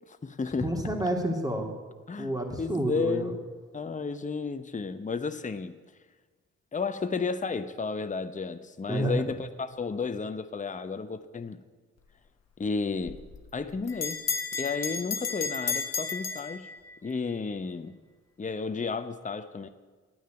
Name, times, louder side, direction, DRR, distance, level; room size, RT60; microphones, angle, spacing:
voice 1, 0.1-0.7 2.1-3.4 3.7-5.7 6.7-11.6 12.6-13.2 13.5-14.2 14.6-16.7 17.0-17.9 18.4-19.7, left 4 dB, 25° left, 10 dB, 0.8 m, -32 dB
voice 2, 0.6-1.7 2.2-3.3 8.9-9.2, right 1 dB, 10° right, 2 dB, 2.6 m, -29 dB
Bell, 13.0-17.1, left 5 dB, 50° left, 1.3 m, -33 dB
9.3 x 9.0 x 9.0 m, 1.4 s
hypercardioid pair, 45°, 33 cm